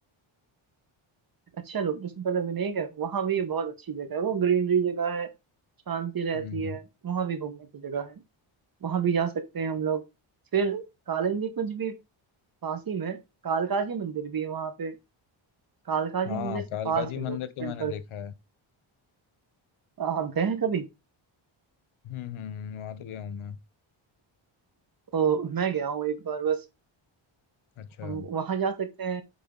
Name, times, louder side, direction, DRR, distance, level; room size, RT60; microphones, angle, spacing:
voice 1, 1.6-5.3 5.9-8.2 8.8-10.0 10.5-11.9 12.6-15.0 15.9-17.9 20.0-20.9 25.1-26.6 28.0-29.2, right 7 dB, 45° right, 1.2 m, -29 dB
voice 2, 6.3-6.8 16.3-18.3 22.0-23.6 27.8-28.3, left 10 dB, 75° left, 0.9 m, -36 dB
8.6 x 3.8 x 3.8 m
cardioid pair, 115°, 49 cm